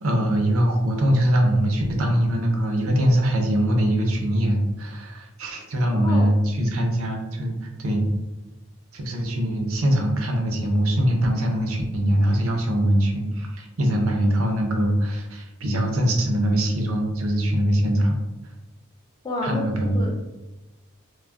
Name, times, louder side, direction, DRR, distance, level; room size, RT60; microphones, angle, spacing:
voice 1, 0.0-8.1 8.9-18.2 19.4-20.0, equal, 70° right, 2 dB, 0.6 m, -22 dB
voice 2, 6.0-6.3 19.2-19.6 19.9-20.3, left 1 dB, 20° left, 0 dB, 0.4 m, -29 dB
2.3 x 2.1 x 3.5 m, 1.1 s
head